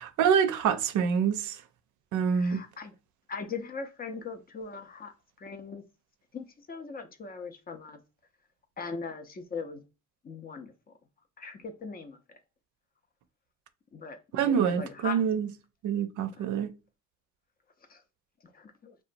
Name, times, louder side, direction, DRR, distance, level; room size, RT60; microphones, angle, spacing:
voice 1, 0.0-1.6 2.1-2.6 14.3-15.5 15.8-16.7, right 7 dB, 75° right, 0.5 m, -26 dB
voice 2, 2.3-2.9 3.3-5.8 6.3-8.0 8.8-9.8 10.2-10.7 11.4-12.4 13.9-15.2 16.3-16.5 17.9-18.0 18.4-19.0, left 5 dB, 30° left, 0.4 m, -40 dB
2.9 x 2.2 x 2.5 m
cardioid pair, 90°, 30 cm